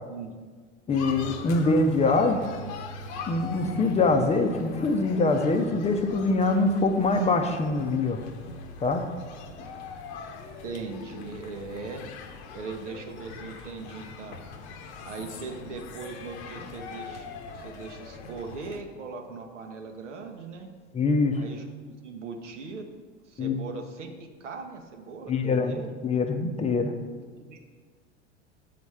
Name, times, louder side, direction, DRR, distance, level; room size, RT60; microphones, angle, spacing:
sound 1, 0.9-18.8, left 4 dB, 70° left, 0.8 m, -42 dB
voice 1, 0.9-2.4 3.3-8.2 8.8-9.0 20.9-21.4 23.4-23.6 25.3-26.9, left 3 dB, 20° left, 6 dB, 0.5 m, -24 dB
voice 2, 10.6-12.0 12.5-14.4 15.0-17.3 17.5-20.7 21.4-21.7 22.0-22.9 23.3-25.9 27.5-27.6, right 4 dB, 85° right, 4 dB, 0.9 m, -39 dB
7.5 x 4.1 x 4.8 m, 1.5 s
hypercardioid pair, 85°, 35 cm